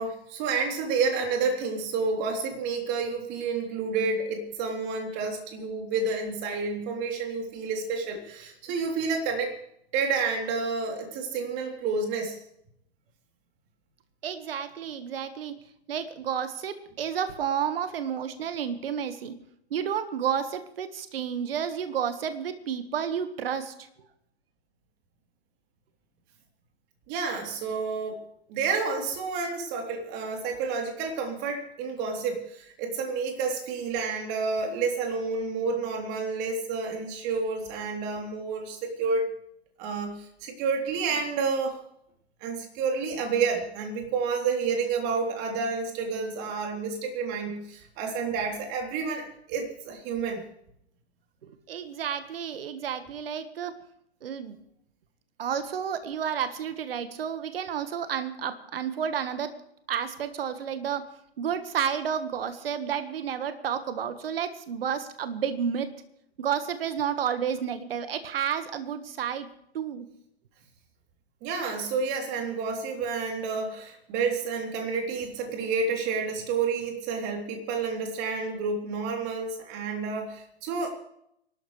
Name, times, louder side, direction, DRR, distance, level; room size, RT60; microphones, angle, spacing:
voice 1, 0.0-9.6 9.9-12.4 27.1-28.2 28.5-39.3 39.8-41.8 42.4-50.4 71.4-80.9, right 4 dB, 30° right, 2 dB, 3.5 m, -30 dB
voice 2, 14.2-15.5 15.9-19.3 19.7-23.7 51.4-53.7 54.2-54.6 55.4-59.5 59.9-61.0 61.4-65.9 66.4-69.5 69.7-70.1, right 8 dB, 60° right, 10 dB, 1.6 m, -31 dB
24.5 x 12.5 x 3.3 m, 0.74 s
figure-of-eight pair, 120°, 33 cm